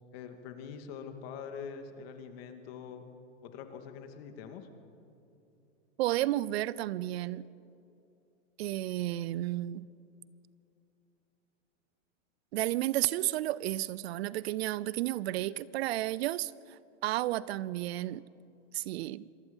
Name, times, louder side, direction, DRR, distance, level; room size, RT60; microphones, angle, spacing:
voice 1, 0.1-3.1 3.4-4.7, left 6 dB, 50° left, 2.4 m, -44 dB
voice 2, 6.0-7.5 8.6-9.9 12.5-18.2 18.7-19.3, right 15 dB, 55° right, 0.6 m, -32 dB
26.0 x 19.5 x 5.5 m
hypercardioid pair, 135°, 37 cm